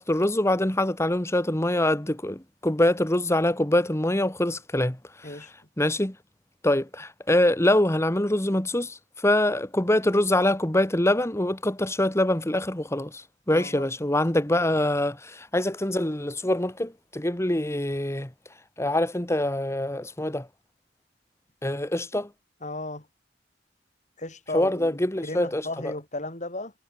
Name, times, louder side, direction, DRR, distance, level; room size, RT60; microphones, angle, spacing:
voice 1, 0.0-5.4 5.8-6.2 6.6-18.3 18.8-20.5 21.6-22.3 24.5-25.9, left 1 dB, 15° left, 1.5 m, -24 dB
voice 2, 13.5-13.8 22.6-23.1 24.2-26.7, left 2 dB, 40° left, 7.5 m, -35 dB
head